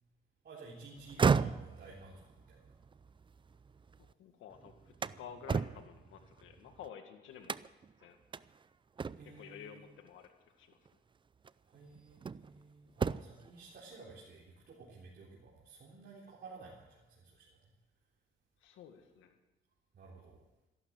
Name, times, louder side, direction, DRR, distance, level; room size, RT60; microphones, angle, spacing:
voice 1, 0.4-2.6 9.1-9.8 11.7-17.5 19.9-20.4, right 3 dB, 50° right, -5 dB, 3.8 m, -53 dB
sound 1, 1.0-4.1 4.5-6.9 7.4-7.9 8.3-8.4 9.0-9.5 10.7-10.9 11.4-12.6 12.9-13.5, right 5 dB, 25° right, 0.5 m, -35 dB
voice 2, 4.0-7.6 8.0-8.2 9.2-10.8 18.6-19.4, left 8 dB, 85° left, 6 dB, 1.9 m, -52 dB
14.5 x 11.5 x 7.6 m, 1.1 s
cardioid pair, 90°, 20 cm